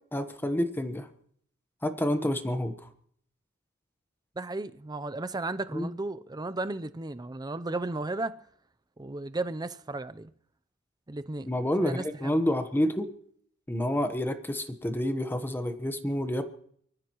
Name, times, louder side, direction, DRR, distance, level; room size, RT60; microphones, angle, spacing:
voice 1, 0.1-1.1 1.8-2.7 5.7-5.9 11.5-13.1 13.7-16.4, left 1 dB, 10° left, 1.1 m, -28 dB
voice 2, 4.4-8.4 9.0-10.3 11.1-11.5 11.8-12.4, right 2 dB, 20° right, 0.6 m, -34 dB
24.5 x 14.5 x 3.1 m
head